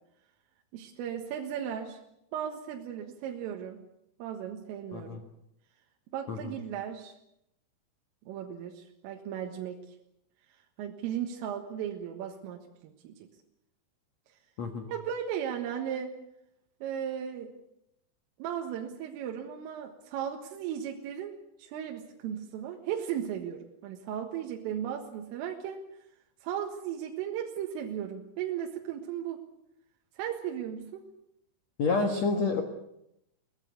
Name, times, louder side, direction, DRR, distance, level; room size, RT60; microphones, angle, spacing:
voice 1, 0.7-2.0 2.3-3.8 4.2-5.2 6.1-7.1 8.3-9.8 10.8-13.3 14.9-16.1 16.8-17.5 18.4-25.8 26.4-29.4 30.2-31.1, right 9 dB, 80° right, 2 dB, 4.2 m, -36 dB
voice 2, 14.6-14.9 31.8-32.6, left 4 dB, 70° left, 5 dB, 1.6 m, -28 dB
22.0 x 18.5 x 8.2 m, 0.81 s
omnidirectional pair, 5.9 m